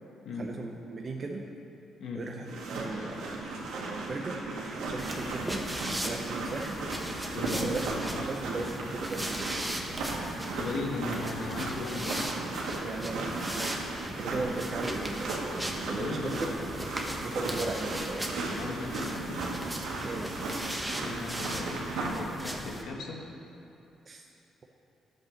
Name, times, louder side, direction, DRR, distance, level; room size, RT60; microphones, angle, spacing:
voice 1, 0.4-1.5 2.1-3.4 3.8-5.6 6.0-6.8 7.5-7.9 8.2-9.5 12.8-13.7 14.0-16.4 17.2-18.3 20.0-20.3 24.1-24.2, right 3 dB, 40° right, 1 dB, 0.9 m, -37 dB
sound 1, 2.4-22.1, right 2 dB, 85° right, 2.2 m, -36 dB
sound 2, 5.0-22.8, right 1 dB, 5° right, 1.4 m, -38 dB
voice 2, 7.3-8.3 10.5-12.3 15.8-16.5 18.5-19.4 21.0-23.2, left 3 dB, 75° left, 0 dB, 1.6 m, -37 dB
11.5 x 9.0 x 6.5 m, 2.8 s
cardioid pair, 90°, 0 cm